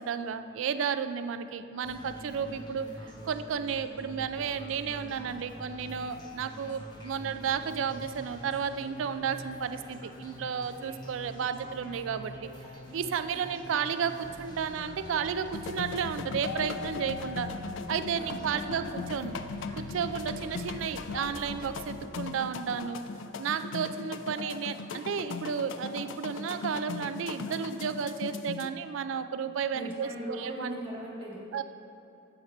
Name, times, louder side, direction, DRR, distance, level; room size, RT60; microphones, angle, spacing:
voice 1, 0.0-2.9 3.2-12.5 12.9-17.5 17.9-19.4 19.7-23.0 23.4-30.8 31.5-31.6, right 7 dB, 70° right, 11 dB, 0.3 m, -32 dB
sound 1, 1.8-21.7, equal, 20° left, 1.0 m, -45 dB
sound 2, 15.5-28.7, left 5 dB, 65° left, 0.3 m, -39 dB
voice 2, 18.1-18.8 29.7-31.4, equal, 25° right, -4 dB, 1.5 m, -40 dB
8.0 x 4.3 x 5.8 m, 2.8 s
head